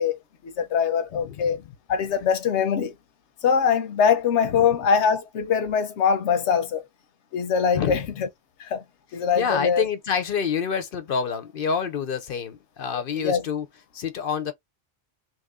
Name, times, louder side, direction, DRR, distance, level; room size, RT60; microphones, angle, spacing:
voice 1, 0.0-1.6 1.9-3.0 3.4-6.8 7.3-8.3 8.6-8.8 9.1-9.9 12.9-13.4, left 6 dB, 90° left, 1.0 m, -23 dB
voice 2, 1.1-1.6 4.4-4.7 7.7-8.0 9.4-13.7 13.9-14.5, left 6 dB, 60° left, 0.8 m, -27 dB
3.0 x 2.5 x 3.5 m
omnidirectional pair, 1.1 m